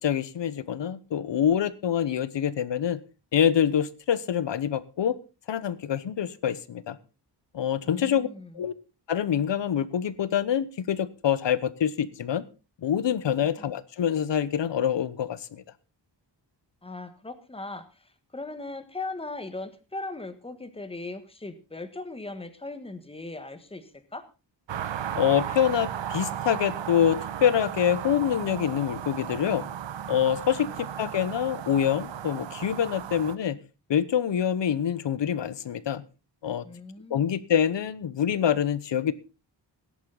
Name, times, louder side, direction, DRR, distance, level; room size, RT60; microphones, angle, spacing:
voice 1, 0.0-3.0 3.3-5.2 5.5-7.0 7.5-8.3 8.5-8.7 9.1-12.4 12.8-15.6 25.1-29.7 30.1-33.6 33.9-36.0 36.4-36.6 37.1-39.1, left 9 dB, 75° left, 16 dB, 1.0 m, -26 dB
voice 2, 7.8-8.5 13.4-13.7 16.8-24.2 30.6-30.8 36.6-37.4, left 2 dB, 15° left, 10 dB, 1.4 m, -39 dB
sound 1, 24.7-33.4, right 9 dB, 80° right, 1.0 m, -35 dB
18.0 x 10.5 x 3.9 m, 0.31 s
wide cardioid pair, 170°, 44 cm